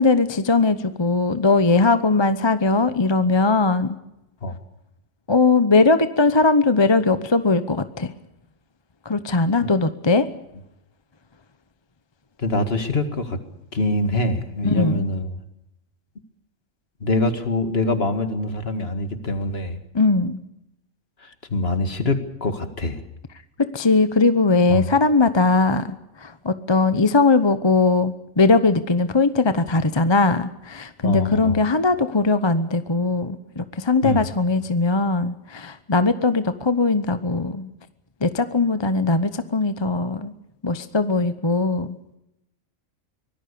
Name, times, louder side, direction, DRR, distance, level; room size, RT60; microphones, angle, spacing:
voice 1, 0.0-4.0 5.3-8.1 9.0-10.3 14.6-15.1 19.9-20.4 23.7-37.7 38.2-40.3 40.6-42.0, left 3 dB, 25° left, 11 dB, 0.9 m, -20 dB
voice 2, 12.4-13.4 13.7-15.4 17.0-19.8 21.2-23.0 24.7-24.8 31.0-31.6 34.0-34.3, left 2 dB, 50° left, 8 dB, 2.3 m, -24 dB
24.5 x 19.0 x 6.9 m, 0.84 s
omnidirectional pair, 1.3 m